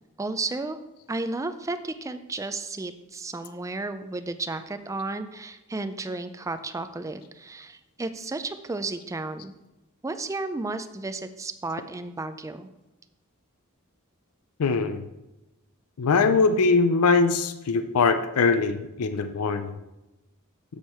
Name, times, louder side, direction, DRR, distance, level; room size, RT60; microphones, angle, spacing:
voice 1, 0.2-0.8 1.1-9.5 10.0-12.7, right 3 dB, 15° right, 10 dB, 0.4 m, -33 dB
voice 2, 14.6-15.1 16.0-19.8, left 4 dB, 80° left, 10 dB, 0.5 m, -22 dB
7.2 x 6.3 x 4.3 m, 0.97 s
head